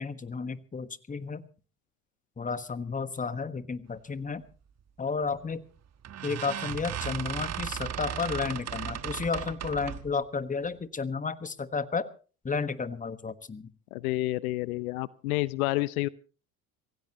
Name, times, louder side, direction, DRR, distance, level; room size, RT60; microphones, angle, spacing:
voice 1, 0.0-1.4 2.4-4.4 5.0-5.6 6.2-12.1 12.4-13.7, left 5 dB, 20° left, 13 dB, 1.4 m, -32 dB
sound 1, 5.3-5.6 6.0-10.1, right 9 dB, 35° right, 1.3 m, -36 dB
voice 2, 13.9-16.1, left 18 dB, 75° left, 19 dB, 0.7 m, -29 dB
26.5 x 16.0 x 3.0 m, 0.36 s
hypercardioid pair, 70°, 43 cm